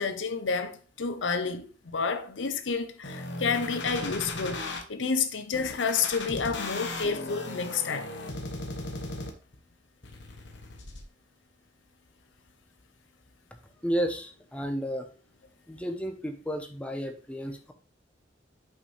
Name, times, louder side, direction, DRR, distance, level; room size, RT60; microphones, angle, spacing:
voice 1, 0.0-8.1, left 5 dB, 85° left, 0.7 m, -30 dB
sound 1, 3.0-4.8 5.5-9.6 10.0-11.0, left 2 dB, 70° left, 1.2 m, -37 dB
voice 2, 13.8-15.1 15.7-17.7, equal, 5° left, 0.8 m, -32 dB
5.8 x 5.5 x 3.2 m
head